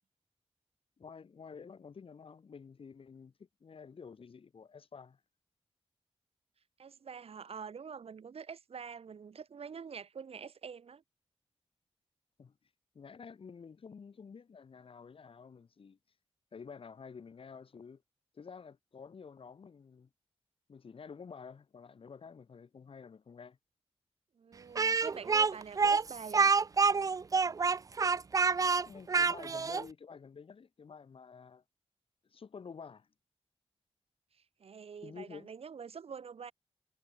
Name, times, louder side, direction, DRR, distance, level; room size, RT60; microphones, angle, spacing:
voice 1, 1.0-3.3 3.6-5.2 12.4-12.5 12.9-16.0 16.5-18.0 18.3-20.1 20.7-23.6 28.8-31.6 32.3-33.1 35.0-35.5, left 5 dB, 60° left, 2.6 m, -50 dB
voice 2, 6.8-11.0 24.4-26.5 34.6-36.5, right 6 dB, 70° right, 2.2 m, -46 dB
Speech, 24.7-29.8, right 5 dB, 35° right, 0.4 m, -27 dB
wide cardioid pair, 120°, 10 cm